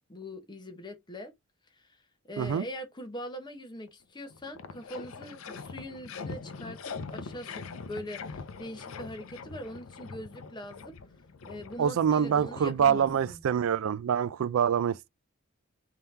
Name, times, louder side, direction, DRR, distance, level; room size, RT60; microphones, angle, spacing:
voice 1, 0.1-1.3 1.8-1.9 2.3-11.0 11.4-13.4, equal, 20° left, 0.8 m, -42 dB
sound 1, 3.9-4.0 4.2-13.6, left 4 dB, 80° left, 0.5 m, -43 dB
voice 2, 11.8-15.1, right 8 dB, 80° right, 0.3 m, -26 dB
3.6 x 2.8 x 3.2 m
head